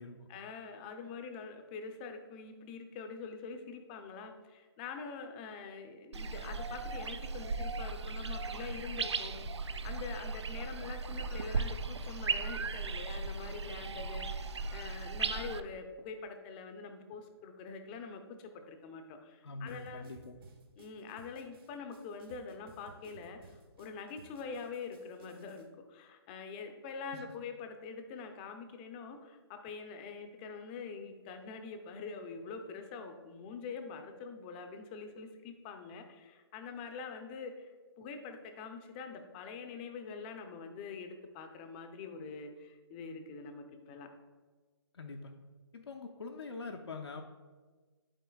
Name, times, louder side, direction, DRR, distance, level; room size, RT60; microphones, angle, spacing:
voice 1, 0.3-20.1 20.8-44.1, left 5 dB, 20° left, 6 dB, 0.6 m, -45 dB
sound 1, 6.1-15.6, right 4 dB, 85° right, 0.5 m, -37 dB
voice 2, 19.4-20.4 27.1-27.2 44.9-45.3 45.7-47.2, left 3 dB, 70° left, 2 dB, 0.6 m, -44 dB
sound 2, 19.7-25.6, right 3 dB, 55° right, 1.5 m, -58 dB
11.5 x 4.3 x 2.3 m, 1.4 s
hypercardioid pair, 150°, 14 cm